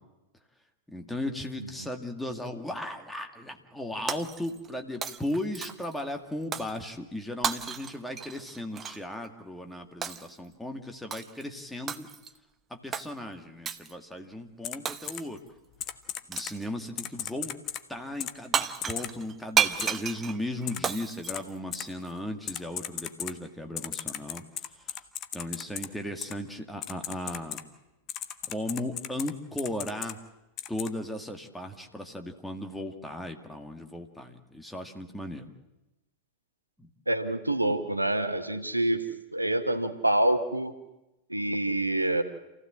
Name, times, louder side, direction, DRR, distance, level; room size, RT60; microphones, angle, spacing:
voice 1, 0.9-12.1 12.7-15.4 16.3-17.5 17.9-24.4 25.3-27.6 28.5-30.2 30.7-35.5 36.8-36.9, left 1 dB, 5° left, 4 dB, 2.1 m, -36 dB
Shatter, 4.1-4.7 5.0-6.0 6.5-6.8 7.4-9.0 10.0-10.4 11.1-11.4 11.9-12.4 12.9-13.1 13.7-13.9 14.9-15.4 16.3-16.7 18.2-18.3 18.5-22.1, right 7 dB, 25° right, 0.9 m, -32 dB
Typing, 14.6-14.8 15.1-15.2 15.8-16.5 17.0-17.8 18.2-18.3 18.8-19.1 19.8-19.9 20.7-20.8 21.3-21.4 21.7-21.8 22.5-23.3 23.8-25.9 26.2-26.3 26.8-27.6 28.1-29.3 29.6-30.1 30.6-30.9, left 11 dB, 35° left, 1.2 m, -35 dB
voice 2, 37.1-39.1 39.3-40.7 41.3-42.2, right 1 dB, 85° right, 9 dB, 1.3 m, -26 dB
28.0 x 15.5 x 7.6 m, 0.99 s
figure-of-eight pair, 90°, 0 cm